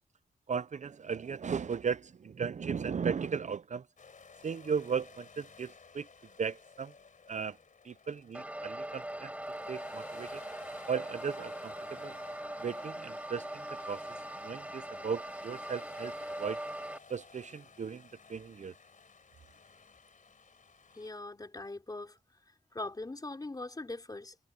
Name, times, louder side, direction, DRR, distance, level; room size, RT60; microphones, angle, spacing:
voice 1, 0.5-3.9 4.4-6.1 6.4-6.9 7.3-7.6 7.8-9.3 9.7-10.4 10.9-12.1 12.6-14.0 14.4-16.6 17.1-18.7, right 6 dB, 50° right, 0.5 m, -36 dB
sound 1, 4.0-21.1, left 5 dB, 60° left, 4.0 m, -56 dB
sound 2, 8.3-17.0, right 1 dB, 10° right, 5.5 m, -41 dB
voice 2, 20.9-22.2 22.7-24.3, left 2 dB, 25° left, 3.9 m, -41 dB
wide cardioid pair, 145°, 15 cm